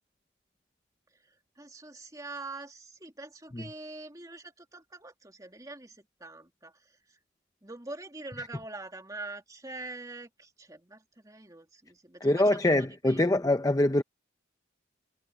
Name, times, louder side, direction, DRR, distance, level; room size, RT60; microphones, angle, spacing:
voice 1, 1.6-6.7 7.6-13.2, right 2 dB, 20° right, 2.6 m, -44 dB
voice 2, 12.2-14.0, left 1 dB, 20° left, 0.6 m, -24 dB
head